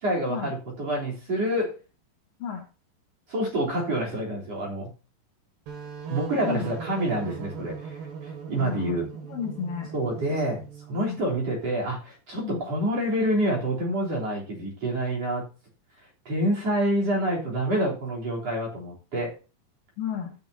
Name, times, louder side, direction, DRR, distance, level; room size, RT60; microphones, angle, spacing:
voice 1, 0.0-1.8 3.3-4.9 6.1-9.1 9.9-15.4 16.3-19.4, right 1 dB, 40° right, -3 dB, 4.3 m, -27 dB
sound 1, 5.7-11.2, right 6 dB, 75° right, 4.5 m, -39 dB
voice 2, 8.6-9.9 11.0-11.2 12.4-12.7 20.0-20.3, left 8 dB, 65° left, 2 dB, 2.4 m, -33 dB
14.5 x 9.1 x 2.8 m, 0.32 s
omnidirectional pair, 4.8 m